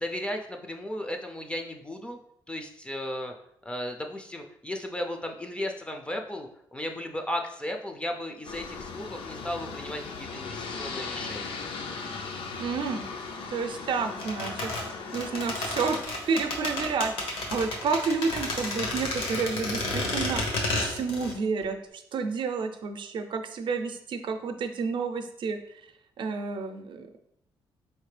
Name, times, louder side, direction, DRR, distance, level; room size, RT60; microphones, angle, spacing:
voice 1, 0.0-2.2 2.5-3.3 3.6-11.6, left 1 dB, 10° left, 3 dB, 0.4 m, -35 dB
Aircraft, 8.4-16.0, left 4 dB, 70° left, 0.5 m, -38 dB
voice 2, 12.6-13.1 13.5-14.7 15.1-16.0 16.3-20.4 20.8-25.6 26.2-27.1, right 5 dB, 60° right, 7 dB, 0.5 m, -30 dB
sound 1, 14.2-21.4 21.6-21.7, left 2 dB, 85° left, 1.1 m, -31 dB
4.3 x 3.2 x 3.2 m, 0.74 s
cardioid pair, 115°, 9 cm